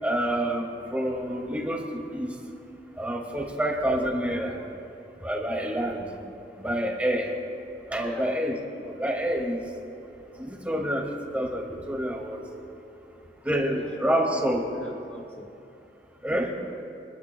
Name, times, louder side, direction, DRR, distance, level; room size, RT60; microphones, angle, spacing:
voice 1, 0.0-2.4 3.0-4.6 5.2-6.1 6.6-7.4 7.9-8.6 8.8-9.7 10.4-12.4 13.4-14.7 16.2-16.5, right 1 dB, 10° right, 0 dB, 2.3 m, -28 dB
voice 2, 8.0-8.3 13.4-13.5 13.7-13.9 14.7-15.8, equal, 10° left, 2 dB, 0.7 m, -43 dB
28.0 x 21.5 x 2.3 m, 2.8 s
head